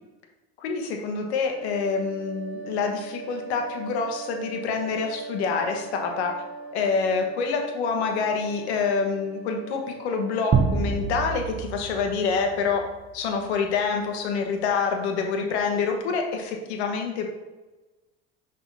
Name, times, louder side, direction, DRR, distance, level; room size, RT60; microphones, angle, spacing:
voice 1, 0.6-6.3 6.7-12.9 13.1-17.3, left 5 dB, 85° left, 3 dB, 1.2 m, -27 dB
sound 1, 1.5-11.2, right 3 dB, 5° right, 1.8 m, -40 dB
sound 2, 10.5-13.1, right 5 dB, 30° right, 0.7 m, -26 dB
5.8 x 4.0 x 4.1 m, 1.1 s
hypercardioid pair, 85°, 32 cm